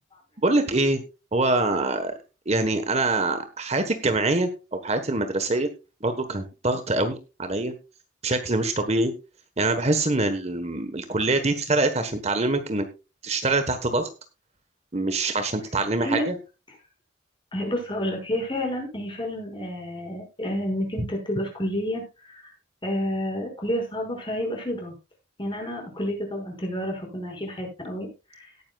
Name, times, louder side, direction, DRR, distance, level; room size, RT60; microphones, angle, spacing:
voice 1, 0.4-1.0 1.3-2.1 2.5-5.7 6.0-7.7 8.2-9.1 9.6-12.9 13.2-14.1 14.9-16.4, right 2 dB, 35° right, 8 dB, 1.3 m, -24 dB
voice 2, 17.5-22.5 22.8-24.9 25.4-28.5, equal, 25° left, 0 dB, 6.1 m, -30 dB
18.0 x 10.0 x 2.4 m, 0.29 s
head